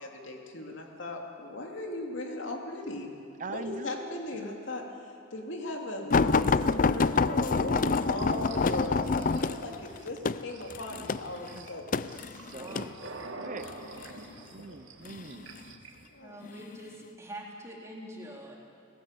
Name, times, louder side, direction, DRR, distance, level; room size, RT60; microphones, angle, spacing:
voice 1, 0.0-3.1 3.5-12.0 13.0-13.1 16.1-16.4, left 2 dB, 70° left, 1 dB, 3.0 m, -38 dB
voice 2, 3.4-4.2 6.4-6.5 7.3-8.4 11.4-11.7 12.1-12.9 13.2-13.7 14.5-15.5, right 3 dB, 40° right, 10 dB, 0.7 m, -43 dB
sound 1, 6.1-12.9 13.7-14.1 15.0-15.7 16.4-16.6 17.0-17.1, left 4 dB, 40° left, 0.5 m, -27 dB
sound 2, 8.0-16.1, right 2 dB, 85° right, 2.1 m, -47 dB
voice 3, 12.5-12.9 13.4-13.6 16.2-18.6, equal, 15° right, -2 dB, 3.9 m, -45 dB
29.5 x 17.0 x 8.4 m, 2.5 s
head